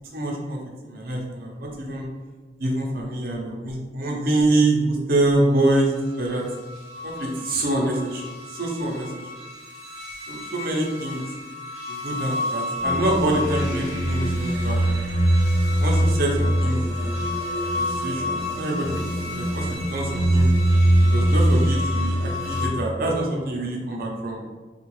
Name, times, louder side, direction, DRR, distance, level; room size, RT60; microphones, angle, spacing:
voice 1, 0.1-2.0 2.6-6.4 7.0-8.2 8.5-9.2 10.3-11.2 11.9-14.8 15.8-17.1 17.7-19.0 19.3-20.5 21.1-24.4, right 1 dB, 55° right, -1 dB, 0.7 m, -25 dB
sound 1, 6.5-22.7, equal, 20° right, 1.0 m, -24 dB
3.6 x 2.4 x 3.0 m, 1.4 s
head